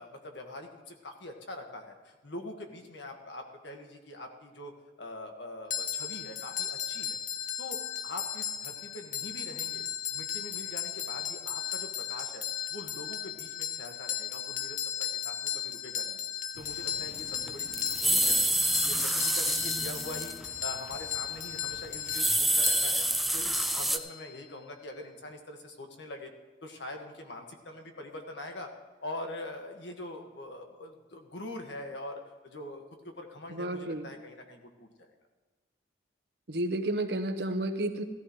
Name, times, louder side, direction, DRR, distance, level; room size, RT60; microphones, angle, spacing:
voice 1, 0.0-7.2 7.6-7.8 8.0-9.8 10.1-16.2 16.6-18.5 18.8-23.0 23.3-26.3 26.6-28.7 29.0-35.1, left 1 dB, 70° left, 3 dB, 1.7 m, -43 dB
sound 1, 5.7-24.5, left 9 dB, 45° left, 0.7 m, -36 dB
sound 2, 16.9-17.0 17.2-20.5 20.8-20.9 21.9-24.0, right 1 dB, ahead, 0.4 m, -27 dB
voice 2, 33.5-34.1 36.5-38.0, right 1 dB, 60° right, 7 dB, 1.0 m, -31 dB
16.0 x 13.5 x 3.2 m, 1.3 s
head